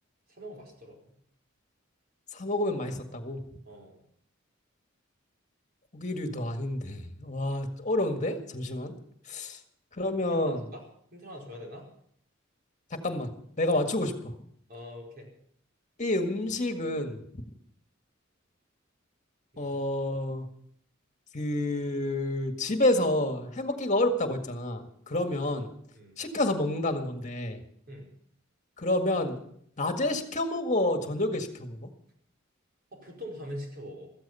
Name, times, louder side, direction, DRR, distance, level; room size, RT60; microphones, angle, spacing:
voice 1, 0.3-1.1 3.6-4.0 10.1-10.8 11.1-11.9 14.7-15.3 19.5-19.8 25.9-26.2 27.9-28.1 32.9-34.1, equal, 45° right, 0 dB, 4.7 m, -43 dB
voice 2, 2.3-3.4 5.9-8.9 9.3-9.6 10.0-10.6 12.9-13.3 13.6-14.3 16.0-17.2 19.6-20.5 21.3-25.7 26.2-27.6 28.8-29.4 29.8-31.9, left 1 dB, 35° left, 5 dB, 1.8 m, -29 dB
15.5 x 14.0 x 5.6 m, 0.66 s
head